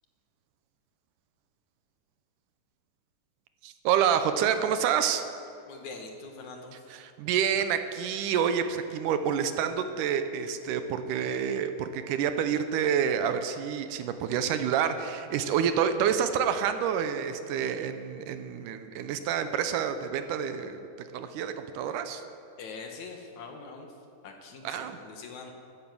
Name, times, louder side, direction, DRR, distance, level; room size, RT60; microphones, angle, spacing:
voice 1, 3.6-5.3 7.2-22.2 24.6-25.0, right 8 dB, 85° right, 9 dB, 2.1 m, -28 dB
voice 2, 5.7-6.9 22.6-23.9 24.2-25.5, left 4 dB, 65° left, 3 dB, 2.4 m, -43 dB
14.5 x 9.9 x 6.1 m, 2.6 s
omnidirectional pair, 3.8 m